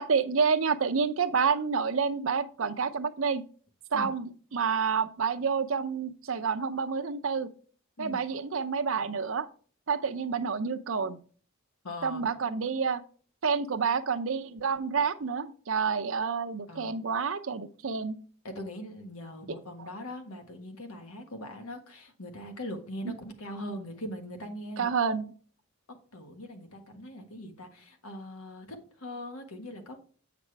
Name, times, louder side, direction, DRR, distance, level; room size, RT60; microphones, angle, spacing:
voice 1, 0.0-3.4 3.9-7.5 8.0-9.5 9.9-11.2 12.0-13.0 13.4-18.2 24.8-25.3, right 5 dB, 70° right, 10 dB, 0.6 m, -29 dB
voice 2, 11.8-12.2 16.7-17.1 18.4-24.9 25.9-30.0, left 1 dB, 90° left, 5 dB, 1.5 m, -41 dB
8.3 x 5.9 x 3.3 m, 0.42 s
head